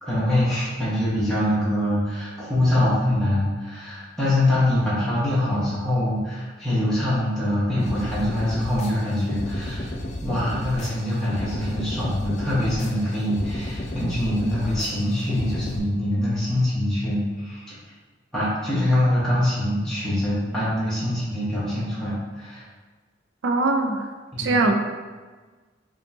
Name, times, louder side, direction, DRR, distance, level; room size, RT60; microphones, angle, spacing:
voice 1, 0.0-9.9 10.2-17.7 18.3-22.6 24.3-24.6, left 1 dB, 5° left, -11 dB, 1.0 m, -24 dB
sound 1, 7.8-15.8, left 1 dB, 40° left, 0.4 m, -33 dB
voice 2, 23.4-24.1 24.4-24.8, right 2 dB, 85° right, 4 dB, 0.5 m, -21 dB
5.1 x 2.5 x 2.7 m, 1.4 s
head